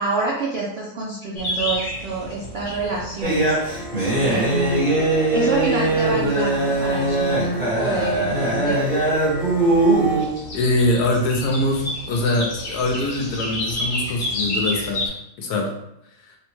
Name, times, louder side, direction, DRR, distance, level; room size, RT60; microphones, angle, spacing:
voice 1, 0.0-3.6 4.2-5.0 5.3-8.8, right 3 dB, 75° right, -3 dB, 0.5 m, -27 dB
sound 1, 1.4-15.1, left 1 dB, 65° left, 1.3 m, -32 dB
sound 2, 3.2-10.2, right 2 dB, 35° right, 1.4 m, -21 dB
voice 2, 10.5-15.7, left 2 dB, 85° left, 2 dB, 1.2 m, -23 dB
3.5 x 2.2 x 3.0 m, 0.81 s
omnidirectional pair, 1.7 m